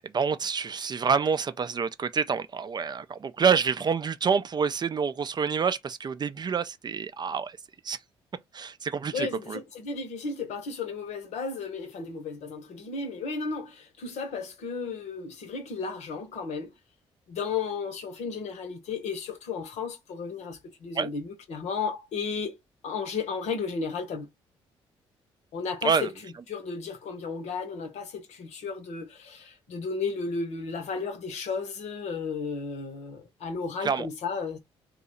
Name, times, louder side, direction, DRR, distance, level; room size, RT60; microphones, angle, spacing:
voice 1, 0.1-7.6 7.8-8.0 8.5-9.6 21.0-21.1 25.8-26.1 33.8-34.1, right 6 dB, 35° right, 0.4 m, -27 dB
voice 2, 9.1-16.7 17.3-22.6 22.8-24.3 25.5-34.6, left 5 dB, 60° left, 0.9 m, -34 dB
2.7 x 2.4 x 4.1 m
hypercardioid pair, 45°, 13 cm